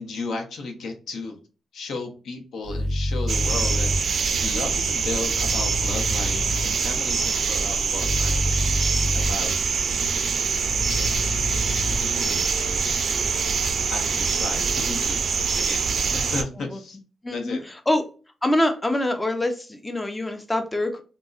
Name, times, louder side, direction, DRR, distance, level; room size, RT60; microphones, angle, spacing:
voice 1, 0.0-1.4 1.7-4.1 4.4-8.6 9.0-9.6 10.9-11.4 11.7-13.1 13.9-15.2 15.6-17.0 17.3-17.6, left 3 dB, 80° left, 4 dB, 0.7 m, -34 dB
sound 1, 2.6-4.0 5.3-6.6 8.0-9.3 10.6-12.0, left 1 dB, 50° left, 1.4 m, -27 dB
sound 2, 3.3-16.4, right 5 dB, 55° right, 0.4 m, -24 dB
voice 2, 17.2-18.0 18.4-21.0, left 1 dB, 15° left, 6 dB, 0.4 m, -25 dB
3.7 x 2.0 x 2.3 m, 0.35 s
wide cardioid pair, 130°, 0 cm